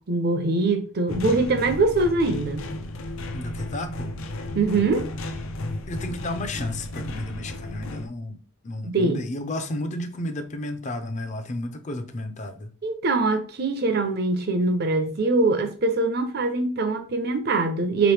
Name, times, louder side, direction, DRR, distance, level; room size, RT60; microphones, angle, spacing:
voice 1, 0.1-2.6 4.6-5.1 8.8-9.2 12.8-18.1, right 3 dB, 50° right, 0.6 m, -23 dB
sound 1, 1.1-8.1, left 1 dB, 85° left, 0.6 m, -33 dB
voice 2, 3.3-4.1 5.9-8.4 8.6-12.7, left 1 dB, 35° left, 0.5 m, -32 dB
4.4 x 3.0 x 3.3 m
head